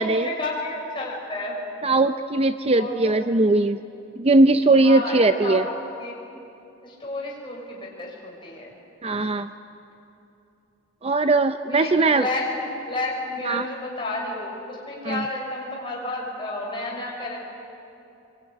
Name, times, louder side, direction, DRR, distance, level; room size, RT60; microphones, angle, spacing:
voice 1, 0.0-1.6 2.7-2.9 4.8-5.7 6.0-6.1 6.8-8.8 11.7-17.4, left 2 dB, 25° left, -2 dB, 6.3 m, -31 dB
voice 2, 1.8-3.8 4.2-5.6 9.0-9.5 11.0-12.2 13.5-13.7 15.0-15.2, right 2 dB, 30° right, 9 dB, 0.5 m, -19 dB
24.0 x 23.0 x 9.9 m, 2.8 s
head